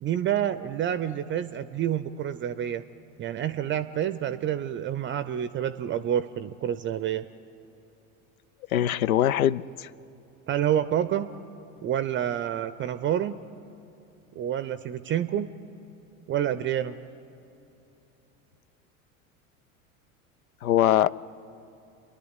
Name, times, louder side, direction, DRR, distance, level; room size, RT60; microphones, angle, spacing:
voice 1, 0.0-2.8 3.2-7.3 10.5-11.3 11.8-13.4 14.4-15.5 16.3-17.0, right 10 dB, 30° right, 0.6 m, -28 dB
voice 2, 8.7-9.9 20.6-21.1, left 11 dB, 80° left, 0.5 m, -22 dB
29.0 x 11.0 x 8.1 m
hypercardioid pair, 80°, 42 cm